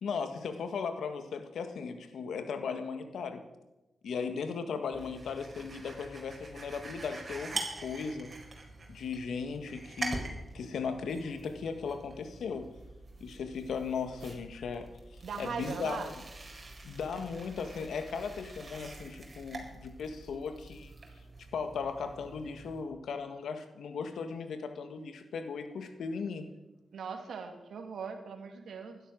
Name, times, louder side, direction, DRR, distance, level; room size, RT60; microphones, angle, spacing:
voice 1, 0.0-3.4 4.0-8.3 8.9-10.3 10.5-12.7 13.2-16.1 16.8-20.9 21.5-26.5, left 5 dB, 80° left, 8 dB, 1.7 m, -37 dB
sound 1, 4.9-22.8, right 2 dB, 40° right, 4.6 m, -45 dB
voice 2, 15.2-16.1 21.0-21.1 26.9-29.0, right 5 dB, 80° right, 5 dB, 2.4 m, -40 dB
16.0 x 12.5 x 6.4 m, 1.0 s
cardioid pair, 50°, 0 cm